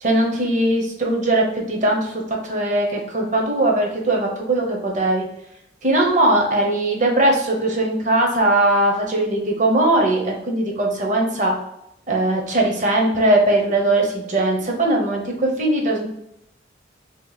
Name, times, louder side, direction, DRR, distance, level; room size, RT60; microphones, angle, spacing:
voice 1, 0.0-5.3 5.8-11.6 12.1-16.1, right 1 dB, 40° right, 1 dB, 0.8 m, -20 dB
3.3 x 2.9 x 4.0 m, 0.80 s
head